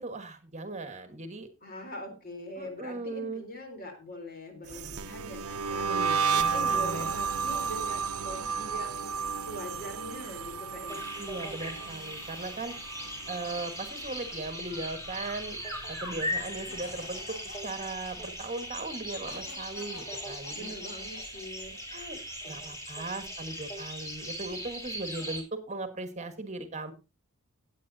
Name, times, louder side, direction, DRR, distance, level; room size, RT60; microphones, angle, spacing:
voice 1, 0.0-1.5 2.6-3.5 5.8-7.1 11.2-12.7 13.3-15.6 15.9-17.4 17.6-20.7 21.9-26.9, right 2 dB, 30° right, 8 dB, 1.4 m, -38 dB
voice 2, 1.6-11.1 20.5-21.8, equal, 45° left, 5 dB, 3.5 m, -43 dB
sound 1, 4.7-13.9 14.1-14.6 14.9-16.4, right 6 dB, 80° right, 0.9 m, -32 dB
sound 2, 10.9-25.4, equal, 15° left, 3.9 m, -39 dB
Laughter, 16.7-22.3, left 2 dB, 75° left, 4.4 m, -49 dB
17.0 x 8.6 x 2.7 m, 0.28 s
head